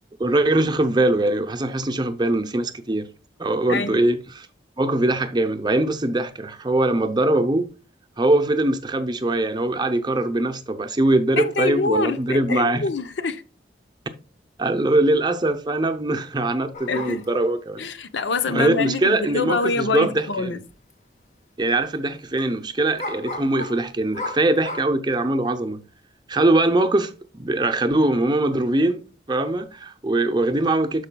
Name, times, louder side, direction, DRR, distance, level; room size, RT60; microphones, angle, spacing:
voice 1, 0.2-3.1 3.4-4.5 4.8-7.7 8.2-12.8 14.6-17.8 18.5-20.5 21.6-25.8 26.3-31.1, right 2 dB, 25° right, 0.6 m, -22 dB
voice 2, 3.7-4.0 11.4-13.4 16.9-17.3 17.8-20.6, left 3 dB, 75° left, 0.7 m, -25 dB
sound 1, 16.7-17.6 19.5-19.6 19.9-20.0 20.7-20.9 21.2-21.3 23.0-24.9, left 2 dB, 40° left, 1.1 m, -34 dB
12.5 x 4.9 x 2.2 m
head